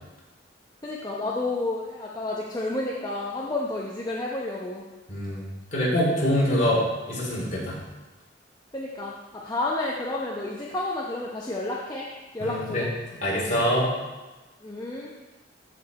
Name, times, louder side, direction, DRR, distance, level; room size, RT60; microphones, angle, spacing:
voice 1, 0.8-4.8 8.7-12.1 12.3-12.9 14.6-15.1, left 2 dB, 20° left, -3 dB, 0.8 m, -30 dB
voice 2, 5.1-7.8 12.4-12.9 13.2-13.9, equal, 40° left, -5 dB, 3.3 m, -25 dB
14.0 x 5.0 x 4.1 m, 1.1 s
head